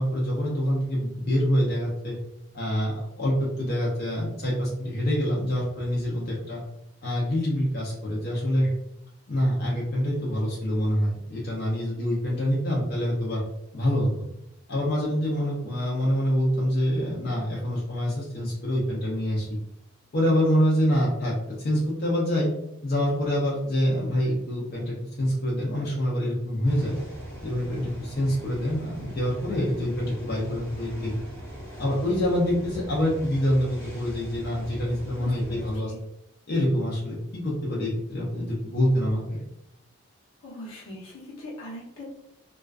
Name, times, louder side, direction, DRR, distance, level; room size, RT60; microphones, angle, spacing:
voice 1, 0.0-2.2 2.5-6.6 7.0-8.7 9.3-13.4 13.7-14.1 14.7-19.6 20.1-21.3 21.6-22.5 22.8-27.0 27.4-31.1 31.8-35.9 36.5-39.4, equal, 45° left, -5 dB, 0.5 m, -26 dB
sound 1, 26.6-35.8, equal, 15° left, 0.9 m, -40 dB
voice 2, 35.2-36.0 40.4-42.0, left 1 dB, 80° left, -4 dB, 0.9 m, -41 dB
2.4 x 2.2 x 2.3 m, 0.79 s
head